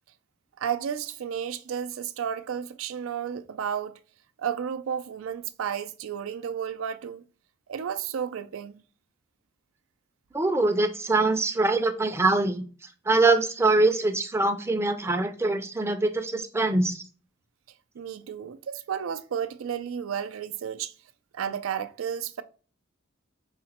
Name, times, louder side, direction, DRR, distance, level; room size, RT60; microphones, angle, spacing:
voice 1, 0.6-4.0 4.4-7.2 7.7-8.8 17.9-20.9 21.3-22.4, right 8 dB, 85° right, 0.4 m, -32 dB
voice 2, 10.3-12.6 13.1-17.0, right 2 dB, 15° right, 0.4 m, -23 dB
4.9 x 2.1 x 4.1 m
head